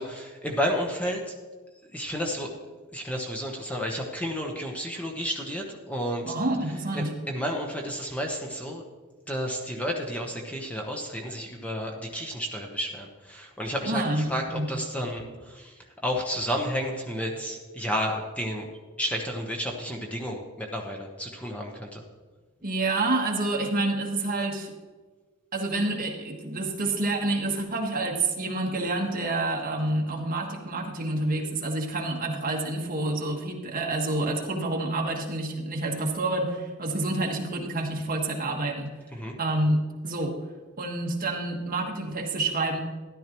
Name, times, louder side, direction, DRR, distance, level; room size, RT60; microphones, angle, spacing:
voice 1, 0.0-1.3 1.9-2.5 2.9-6.3 6.9-8.8 9.3-18.7 19.0-22.0 39.1-39.3, equal, 5° left, 1 dB, 1.0 m, -31 dB
voice 2, 6.2-7.1 13.8-14.7 22.6-24.7 25.5-38.9 39.4-40.3 40.8-42.8, right 2 dB, 40° right, 0 dB, 1.5 m, -28 dB
13.5 x 11.0 x 3.1 m, 1.3 s
head